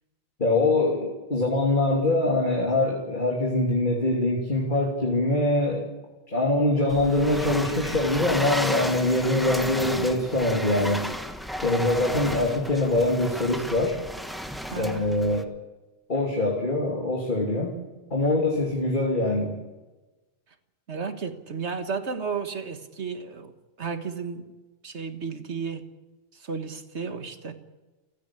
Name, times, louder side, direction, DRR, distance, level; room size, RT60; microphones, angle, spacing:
voice 1, 0.4-5.8 6.3-11.0 11.6-14.0 14.7-15.5 16.1-17.8 18.1-19.6, left 2 dB, 45° left, -1 dB, 3.1 m, -23 dB
sound 1, 6.9-15.4, equal, ahead, 1.2 m, -33 dB
voice 2, 14.7-15.2 20.9-23.5 23.8-24.5 24.8-25.9 26.3-27.5, right 5 dB, 70° right, 8 dB, 1.8 m, -33 dB
29.0 x 10.0 x 9.9 m, 1.2 s
omnidirectional pair, 1.2 m